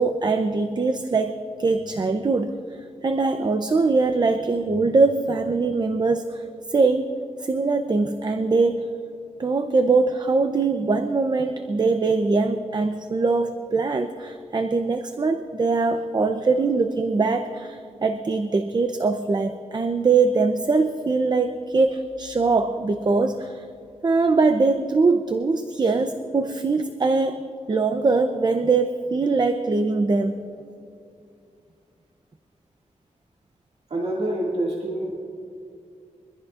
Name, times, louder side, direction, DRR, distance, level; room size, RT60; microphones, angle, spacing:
voice 1, 0.0-2.6 3.0-8.9 9.4-23.6 24.0-27.4 27.7-30.5, right 3 dB, 35° right, 7 dB, 0.6 m, -22 dB
voice 2, 33.9-35.1, right 1 dB, 55° right, -4 dB, 2.1 m, -26 dB
24.0 x 15.0 x 2.5 m, 2.5 s
wide cardioid pair, 120°, 13 cm